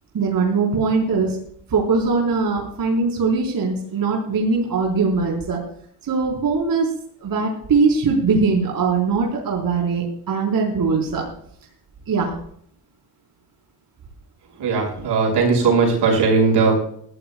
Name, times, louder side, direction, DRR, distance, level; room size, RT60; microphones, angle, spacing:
voice 1, 0.1-1.4 1.7-5.6 6.0-6.9 7.2-11.2 12.1-12.4, right 4 dB, 60° right, -2 dB, 4.4 m, -21 dB
voice 2, 14.6-16.7, right 4 dB, 85° right, -1 dB, 6.2 m, -18 dB
21.0 x 15.0 x 2.4 m, 0.65 s
cardioid pair, 90°, 40 cm